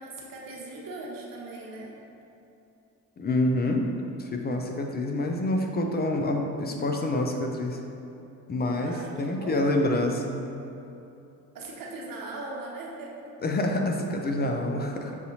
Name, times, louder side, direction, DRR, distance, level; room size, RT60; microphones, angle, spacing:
voice 1, 0.0-2.0 8.8-9.9 11.5-13.3, right 2 dB, 50° right, -2 dB, 1.0 m, -39 dB
voice 2, 3.2-3.9 4.2-7.8 8.5-10.5 13.4-15.2, left 1 dB, 25° left, 2 dB, 0.4 m, -27 dB
6.2 x 2.7 x 2.8 m, 2.8 s
hypercardioid pair, 60°, 44 cm